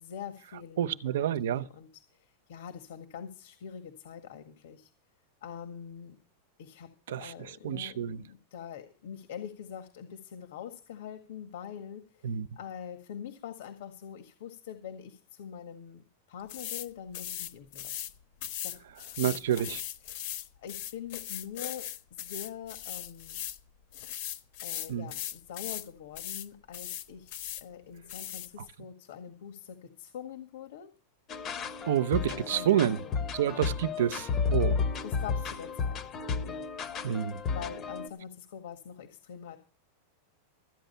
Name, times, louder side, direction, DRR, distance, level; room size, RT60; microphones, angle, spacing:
voice 1, 0.0-4.9 5.4-6.2 6.6-6.9 7.2-18.0 18.6-18.7 19.1-19.8 20.0-23.5 24.6-30.9 32.2-33.6 35.0-36.1 36.5-36.7 37.2-39.6, left 8 dB, 70° left, 1.8 m, -44 dB
voice 2, 0.8-1.7 7.1-8.2 12.2-12.5 19.2-19.8 24.9-25.1 31.8-33.0 33.3-34.8 37.0-37.4, right 10 dB, 75° right, 0.9 m, -29 dB
sound 1, 16.5-16.9 17.1-18.1 18.4-23.6 23.9-25.9 26.2-26.5 26.7-27.6 28.1-28.5, left 12 dB, 50° left, 1.1 m, -38 dB
sound 2, 31.3-38.1, left 5 dB, 25° left, 0.9 m, -32 dB
14.0 x 9.3 x 5.6 m
supercardioid pair, 170°, 0 cm